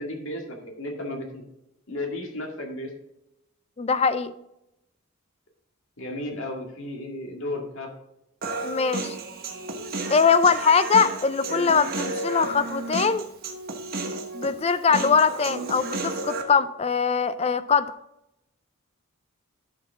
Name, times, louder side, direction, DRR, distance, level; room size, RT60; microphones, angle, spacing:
voice 1, 0.0-1.4 1.9-2.9 6.0-7.9, left 1 dB, 65° left, 1 dB, 2.1 m, -33 dB
voice 2, 3.8-4.3 8.6-9.2 10.1-13.2 14.3-17.9, left 5 dB, 30° left, 13 dB, 0.4 m, -22 dB
Human voice, 8.4-16.4, right 3 dB, 45° right, 1.1 m, -32 dB
11.0 x 6.2 x 3.6 m, 0.87 s
head